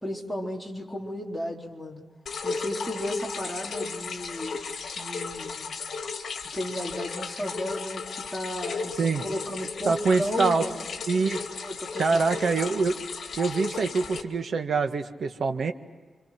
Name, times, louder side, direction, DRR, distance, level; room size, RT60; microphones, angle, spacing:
voice 1, 0.0-2.0 2.4-4.6 5.0-5.7 6.5-10.8 11.5-12.4, left 1 dB, ahead, -2 dB, 4.0 m, -34 dB
sound 1, 2.3-14.2, left 4 dB, 65° left, 2.2 m, -35 dB
voice 2, 9.8-10.6 11.1-11.4 12.0-13.0 13.4-15.7, right 4 dB, 65° right, 6 dB, 1.6 m, -25 dB
29.5 x 26.0 x 6.0 m, 1.4 s
wide cardioid pair, 120°, 0 cm